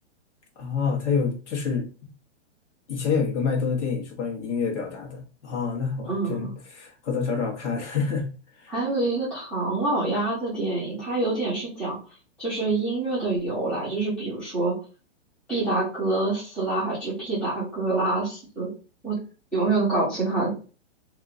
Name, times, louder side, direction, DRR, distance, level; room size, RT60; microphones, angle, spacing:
voice 1, 0.6-1.9 2.9-8.3 8.6-8.7, left 5 dB, 75° left, 1.3 m, -27 dB
voice 2, 6.1-6.5 8.7-12.0 12.4-14.7 15.5-18.7 19.0-19.1 19.5-20.5, right 2 dB, 5° left, 0.6 m, -26 dB
3.6 x 2.8 x 2.6 m
hypercardioid pair, 175°, 36 cm